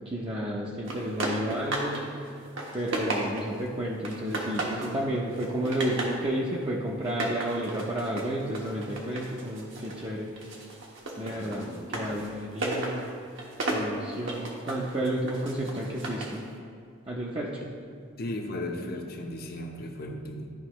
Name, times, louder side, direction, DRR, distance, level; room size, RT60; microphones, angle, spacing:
voice 1, 0.1-2.3 2.7-10.3 11.2-13.0 13.6-16.4 17.1-17.7, right 1 dB, 25° right, -4 dB, 0.6 m, -31 dB
sound 1, 0.9-2.0 2.4-3.6 4.0-5.0 5.3-6.2 7.0-10.0 10.4-16.4, right 2 dB, 65° right, 1.2 m, -34 dB
voice 2, 11.3-12.1 17.6-17.7 18.2-20.5, left 1 dB, 45° left, 2 dB, 0.8 m, -36 dB
11.5 x 5.3 x 3.0 m, 2.3 s
head